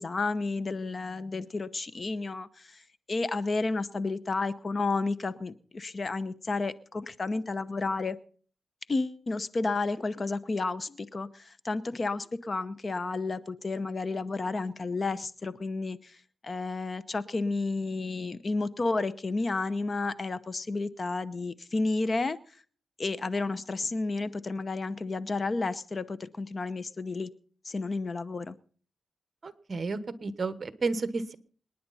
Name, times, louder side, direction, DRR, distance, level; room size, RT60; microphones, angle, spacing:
voice 1, 0.0-8.2 8.9-22.6 23.0-27.3 27.6-28.6, left 3 dB, 40° left, 15 dB, 0.8 m, -31 dB
voice 2, 29.4-31.4, right 3 dB, 45° right, 13 dB, 1.2 m, -32 dB
26.5 x 10.0 x 4.2 m, 0.44 s
wide cardioid pair, 100°, 0 cm